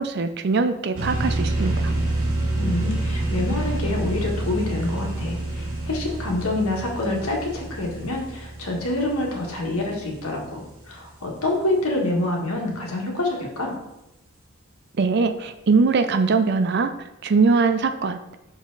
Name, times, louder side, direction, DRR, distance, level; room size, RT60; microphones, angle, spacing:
voice 1, 0.0-1.9 15.0-16.9 17.2-18.2, right 4 dB, 50° right, 10 dB, 0.5 m, -21 dB
sound 1, 0.9-10.4, right 1 dB, 80° right, 1.4 m, -28 dB
voice 2, 2.6-13.8, left 2 dB, 90° left, -1 dB, 1.7 m, -27 dB
6.2 x 4.8 x 4.0 m, 0.92 s
head